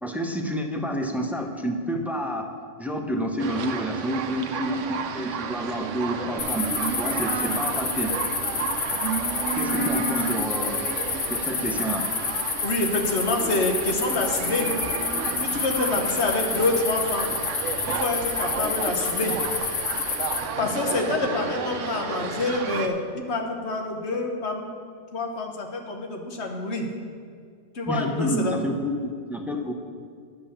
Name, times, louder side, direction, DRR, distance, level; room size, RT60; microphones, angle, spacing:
voice 1, 0.0-2.5 2.8-8.1 9.6-10.8 11.3-12.1 27.9-29.7, equal, ahead, 3 dB, 0.5 m, -29 dB
sound 1, 3.4-22.9, right 6 dB, 80° right, 1.1 m, -32 dB
sound 2, 6.4-20.4, left 5 dB, 85° left, 1.4 m, -29 dB
voice 2, 12.6-14.7 15.4-17.3 17.9-19.3 20.6-24.7 25.1-26.9 27.7-28.6 29.5-29.7, left 2 dB, 65° left, 2 dB, 1.4 m, -27 dB
10.5 x 5.4 x 7.0 m, 2.1 s
omnidirectional pair, 1.3 m